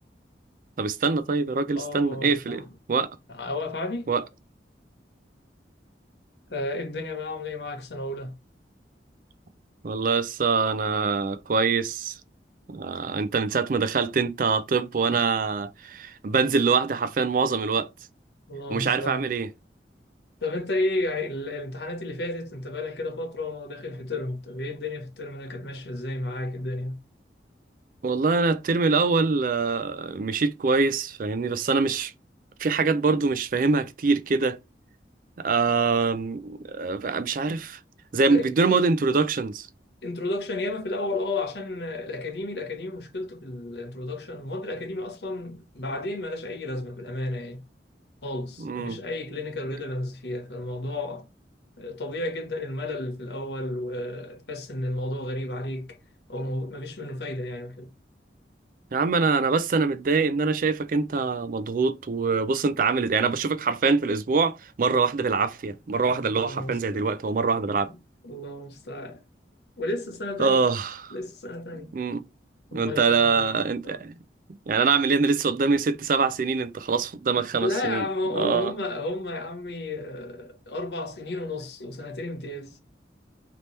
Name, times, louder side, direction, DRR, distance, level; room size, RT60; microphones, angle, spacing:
voice 1, 0.8-2.6 2.9-3.2 4.1-4.2 9.8-12.2 12.7-17.9 18.7-19.5 28.0-32.1 32.6-34.6 35.4-37.8 38.1-39.7 48.6-49.0 58.9-67.9 70.4-71.1 71.9-72.2 72.7-74.1 74.7-78.0 78.3-78.7, right 4 dB, 50° right, 0.4 m, -24 dB
voice 2, 1.7-2.7 3.3-4.1 6.5-8.4 18.5-19.3 20.4-27.0 38.3-38.5 40.0-47.6 48.2-51.3 51.8-56.0 56.3-57.9 66.1-67.2 67.6-68.0 68.2-69.2 69.8-70.6 71.1-71.9 72.7-74.0 77.6-82.8, left 2 dB, 70° left, 1.0 m, -32 dB
3.3 x 2.9 x 4.0 m
head